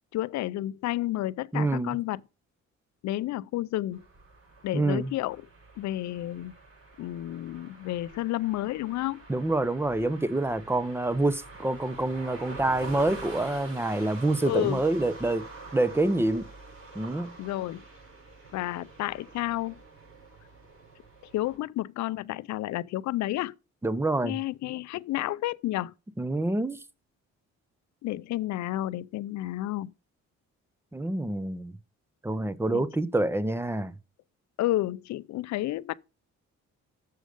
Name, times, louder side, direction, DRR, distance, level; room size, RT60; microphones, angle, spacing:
voice 1, 0.1-2.2 3.0-4.0 4.6-5.5 5.8-6.5 7.0-9.2 14.4-14.8 17.4-17.8 18.5-19.8 21.3-23.5 24.2-25.9 28.0-29.9 32.7-32.8 34.6-36.0, left 15 dB, 65° left, 0.4 m, -31 dB
voice 2, 1.5-2.0 4.7-5.1 9.3-15.5 15.7-16.4 16.9-17.3 23.8-24.4 26.2-26.8 30.9-31.8 32.2-33.9, right 2 dB, 10° right, 0.6 m, -27 dB
sound 1, 3.9-21.6, right 3 dB, 50° right, 5.9 m, -46 dB
6.6 x 6.3 x 5.0 m
cardioid pair, 90°, 30 cm